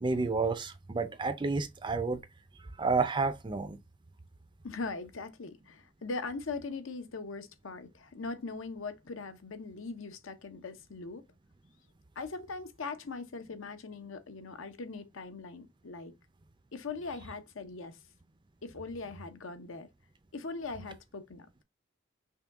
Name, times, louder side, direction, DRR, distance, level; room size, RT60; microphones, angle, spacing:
voice 1, 0.0-2.2 2.8-3.8, right 4 dB, 25° right, 0.4 m, -30 dB
voice 2, 4.6-11.2 12.2-16.1 16.7-18.0 18.6-19.9 20.3-21.5, left 3 dB, 75° left, 0.7 m, -40 dB
5.7 x 2.3 x 3.5 m
head